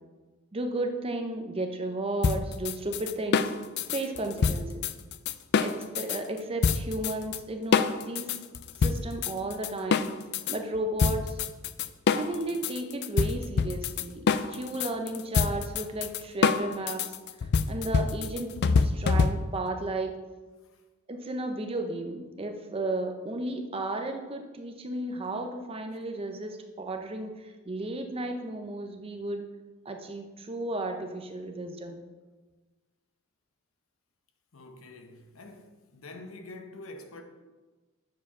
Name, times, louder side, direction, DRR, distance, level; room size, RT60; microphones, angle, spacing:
voice 1, 0.5-3.5 3.9-4.9 5.6-8.3 8.8-10.1 10.5-11.4 12.1-17.1 17.7-20.2 21.1-29.5 29.8-32.0, right 2 dB, 25° right, 0.6 m, -34 dB
sound 1, 2.2-6.2 6.6-7.4 7.7-10.6 11.0-19.7, left 5 dB, 50° left, 0.3 m, -26 dB
voice 2, 34.5-37.2, left 2 dB, 75° left, 0.9 m, -46 dB
7.4 x 4.8 x 5.5 m
head